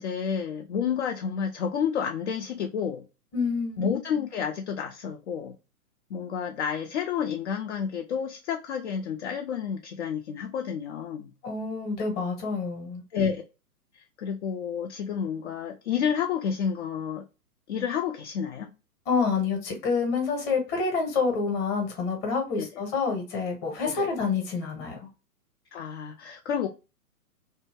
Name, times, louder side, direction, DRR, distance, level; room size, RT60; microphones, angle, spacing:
voice 1, 0.0-3.1 3.8-5.6 6.1-11.3 13.1-13.4 13.9-17.2 17.7-18.7 22.6-22.7 23.8-24.1 25.7-26.7, left 7 dB, 50° left, 0.4 m, -30 dB
voice 2, 3.3-3.9 11.4-13.0 19.1-25.1, left 4 dB, 20° left, 0.9 m, -28 dB
2.7 x 2.2 x 2.9 m
hypercardioid pair, 125°, 46 cm